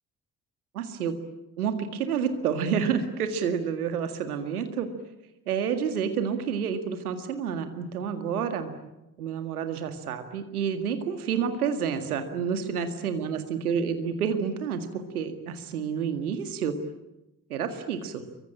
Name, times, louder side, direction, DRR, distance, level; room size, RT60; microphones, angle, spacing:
voice 1, 0.7-1.1 1.6-4.9 5.5-8.7 9.2-16.7 17.5-18.2, right 7 dB, 85° right, 8 dB, 2.0 m, -29 dB
26.5 x 23.5 x 8.9 m, 0.95 s
figure-of-eight pair, 45°, 43 cm